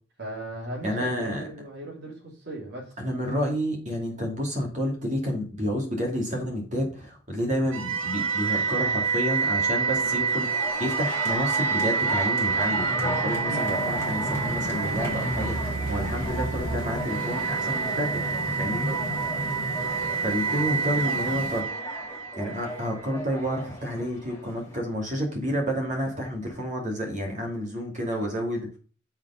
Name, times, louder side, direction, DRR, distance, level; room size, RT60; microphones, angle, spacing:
voice 1, 0.2-2.9 13.4-13.7 18.6-19.0, right 1 dB, 55° right, -1 dB, 2.6 m, -37 dB
voice 2, 0.8-1.4 3.0-18.9 20.2-21.7 22.4-28.8, equal, 35° right, 0 dB, 2.5 m, -30 dB
sound 1, 7.7-22.8, right 5 dB, 75° right, 1.3 m, -28 dB
sound 2, 10.4-24.8, equal, 15° left, 2.1 m, -36 dB
sound 3, 13.5-21.6, left 1 dB, 45° left, 1.4 m, -37 dB
7.3 x 4.7 x 5.6 m, 0.38 s
head